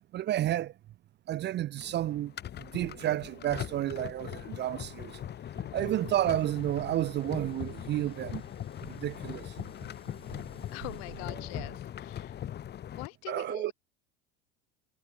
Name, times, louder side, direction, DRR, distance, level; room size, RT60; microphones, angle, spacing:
voice 1, 0.1-0.7 1.3-2.3 2.6-5.2 5.7-8.4 8.9-9.5 13.3-13.7, right 13 dB, 35° right, 0.6 m, -31 dB
sound 1, 1.8-13.1, left 10 dB, 30° left, 1.2 m, -41 dB
sound 2, 2.8-11.8, right 21 dB, 80° right, 0.9 m, -52 dB
sound 3, 5.9-12.8, left 4 dB, 15° left, 4.2 m, -63 dB
voice 2, 10.7-12.4 13.0-13.7, left 39 dB, 70° left, 4.0 m, -43 dB
supercardioid pair, 115°, 32 cm